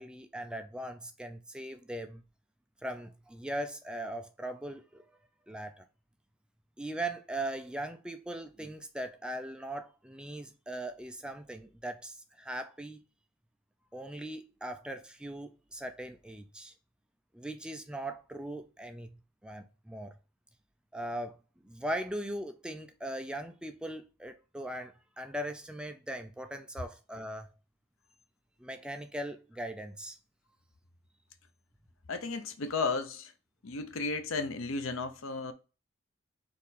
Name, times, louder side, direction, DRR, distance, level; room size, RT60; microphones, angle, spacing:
voice 1, 0.0-2.2 2.8-5.1 5.5-5.8 6.8-13.0 13.9-16.7 17.3-19.1 19.4-20.1 20.9-21.4 21.6-27.5 28.6-30.2, right 1 dB, 5° right, 0.3 m, -39 dB
voice 2, 32.1-33.3 33.6-35.5, left 4 dB, 70° left, 0.6 m, -34 dB
4.3 x 3.0 x 4.0 m
head